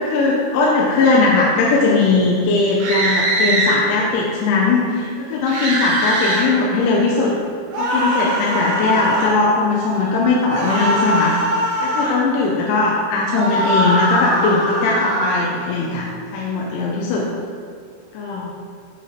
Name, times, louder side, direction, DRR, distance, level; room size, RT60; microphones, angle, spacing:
voice 1, 0.0-7.3 7.8-11.4 11.8-17.3 18.1-18.5, left 3 dB, 80° left, -3 dB, 2.9 m, -19 dB
sound 1, 2.8-3.8 5.5-6.5 7.7-9.3 10.5-12.2 13.3-15.4, right 1 dB, 65° right, 2.6 m, -21 dB
8.2 x 3.7 x 4.1 m, 2.3 s
omnidirectional pair, 5.3 m